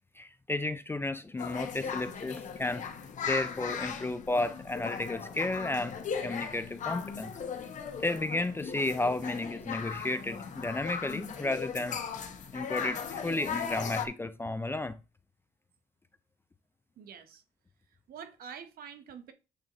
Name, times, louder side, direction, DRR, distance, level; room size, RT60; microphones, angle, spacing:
voice 1, 0.2-2.8 3.2-7.3 8.0-12.0 12.5-15.0, left 2 dB, 15° left, 0.4 m, -33 dB
sound 1, 1.4-14.1, left 6 dB, 45° left, 1.1 m, -38 dB
voice 2, 17.0-17.4 18.1-19.3, right 7 dB, 60° right, 1.1 m, -46 dB
8.3 x 3.7 x 3.0 m
cardioid pair, 110°, 17 cm